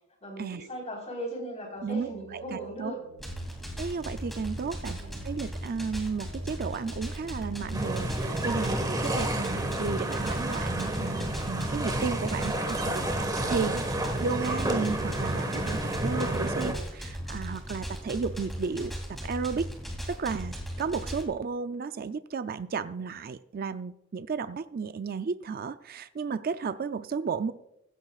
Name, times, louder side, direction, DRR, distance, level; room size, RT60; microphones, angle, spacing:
voice 1, 0.2-3.0 5.0-5.3 12.5-13.1, right 1 dB, 30° left, -1 dB, 4.1 m, -38 dB
sound 1, 1.7-11.5, right 7 dB, 75° right, 3.7 m, -52 dB
voice 2, 1.8-2.9 3.8-13.0 13.5-13.8 14.2-18.9 19.2-19.7 20.1-27.5, right 5 dB, 45° right, 11 dB, 0.4 m, -33 dB
sound 2, 3.2-21.2, equal, ahead, 2.6 m, -38 dB
sound 3, 7.7-16.7, right 1 dB, 20° right, 1.5 m, -30 dB
15.5 x 15.0 x 2.4 m, 0.83 s
head